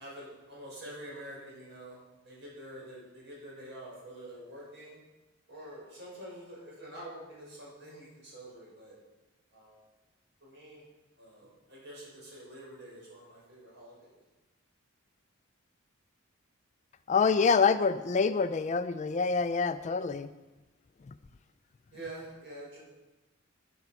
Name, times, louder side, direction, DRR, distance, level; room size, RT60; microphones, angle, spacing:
voice 1, 0.0-5.0 5.5-9.0 9.5-9.8 10.4-10.8 11.2-14.1 21.9-22.8, right 1 dB, 60° right, -5 dB, 5.9 m, -47 dB
voice 2, 17.1-20.3, left 5 dB, 35° left, 11 dB, 0.3 m, -26 dB
11.5 x 11.0 x 5.9 m, 1.1 s
head